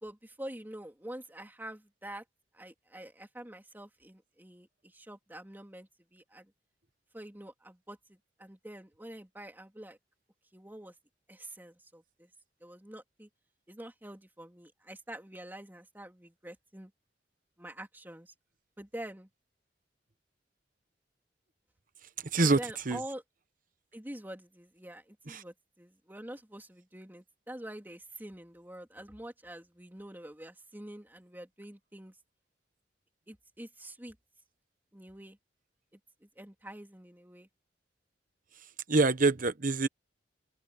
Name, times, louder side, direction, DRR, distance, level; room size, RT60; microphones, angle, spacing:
voice 1, 0.0-2.2 2.5-4.7 4.9-6.4 7.1-8.0 8.4-10.0 10.5-10.9 11.3-12.3 12.6-13.3 13.7-16.9 17.6-18.3 18.8-19.3 22.4-23.2 23.9-32.1 33.3-34.1 34.9-35.4 36.4-37.5, right 1 dB, 10° right, 3.4 m, -46 dB
voice 2, 22.2-23.0 25.3-25.4 38.9-39.9, right 3 dB, 50° right, 1.1 m, -26 dB
open air
head